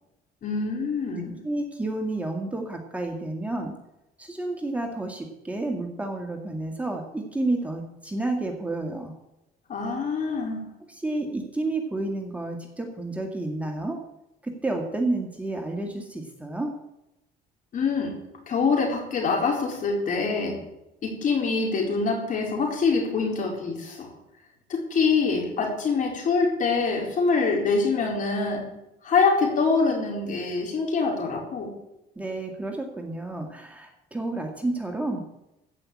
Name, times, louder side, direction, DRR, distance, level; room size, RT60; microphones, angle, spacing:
voice 1, 0.4-1.3 9.7-10.6 17.7-18.1 18.5-20.6 21.0-24.1 24.7-28.7 29.0-31.7, left 4 dB, 50° left, 0 dB, 4.4 m, -25 dB
voice 2, 1.4-3.8 4.2-9.1 10.9-14.0 14.4-16.7 32.2-35.2, right 2 dB, 10° right, 2 dB, 1.9 m, -30 dB
15.0 x 5.8 x 8.5 m, 0.90 s
cardioid pair, 110°, 17 cm